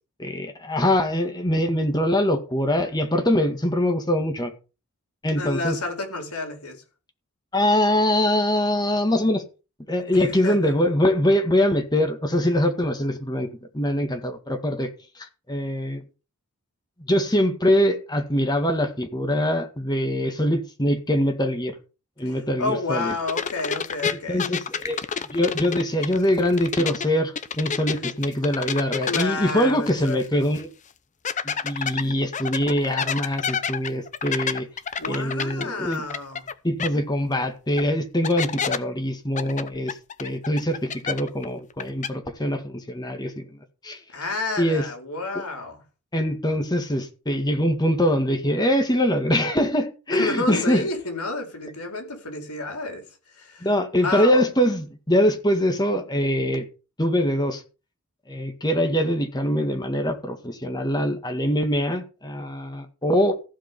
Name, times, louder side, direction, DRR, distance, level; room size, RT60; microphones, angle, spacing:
voice 1, 0.2-4.5 5.2-5.8 7.5-9.4 9.9-14.9 15.2-16.0 17.0-21.8 22.2-23.1 24.0-25.0 25.3-30.7 31.4-34.7 35.1-36.0 36.6-43.6 43.8-44.0 44.6-44.9 46.1-50.9 53.6-56.7 57.0-57.6 58.3-63.4, equal, 20° left, 1.9 m, -23 dB
voice 2, 5.3-6.8 10.1-10.7 22.2-24.4 27.9-28.0 29.1-30.2 35.0-36.5 44.1-45.8 50.1-53.1 53.3-53.7 54.0-54.5, left 3 dB, 85° left, 4.4 m, -30 dB
sound 1, 23.3-27.1 27.3-30.2 30.5-30.6 31.2-36.5 36.8-36.9 37.8-37.9 38.2-38.8 39.4-41.4 41.7-42.1, left 6 dB, 35° left, 0.7 m, -29 dB
15.0 x 5.2 x 6.8 m
head